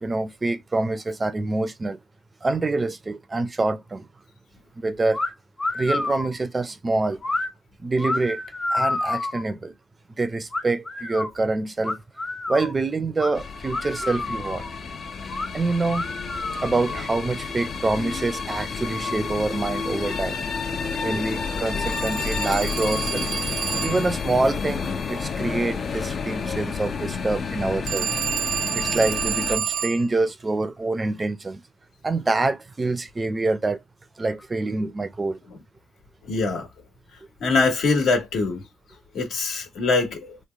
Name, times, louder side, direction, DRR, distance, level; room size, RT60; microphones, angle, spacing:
voice 1, 0.0-2.0 2.4-4.1 4.8-5.2 5.7-7.2 7.8-8.4 8.7-9.7 10.2-12.0 12.5-14.6 15.5-16.0 16.6-20.4 21.0-23.3 23.8-28.1 28.7-31.6 32.0-33.8 34.2-35.4, right 3 dB, 25° right, 0.6 m, -26 dB
sound 1, 5.1-5.3 5.6-6.3 7.2-7.5 8.0-9.5 10.5-11.3 11.8-12.8 13.2-13.3 13.7-14.7 15.3-15.5 15.9-17.0, left 2 dB, 25° left, 0.9 m, -29 dB
sound 2, 13.3-29.6, left 5 dB, 50° left, 0.6 m, -30 dB
Telephone, 21.9-24.2 27.9-30.1, right 8 dB, 75° right, 0.6 m, -29 dB
voice 2, 36.3-36.7 37.4-38.6 39.1-40.4, left 3 dB, 75° left, 1.4 m, -23 dB
3.1 x 2.3 x 3.3 m
cardioid pair, 90°, 0 cm